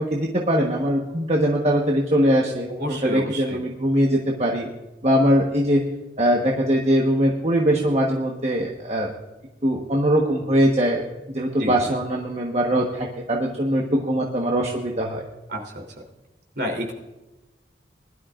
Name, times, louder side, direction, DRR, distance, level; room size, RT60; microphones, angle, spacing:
voice 1, 0.0-4.7 5.0-5.8 6.2-9.1 9.6-11.0 11.3-15.2, equal, 35° right, -1 dB, 1.2 m, -21 dB
voice 2, 2.7-3.6 11.6-11.7 15.5-15.8 16.6-16.9, equal, 55° right, 1 dB, 3.2 m, -29 dB
20.5 x 12.0 x 2.5 m, 1.0 s
head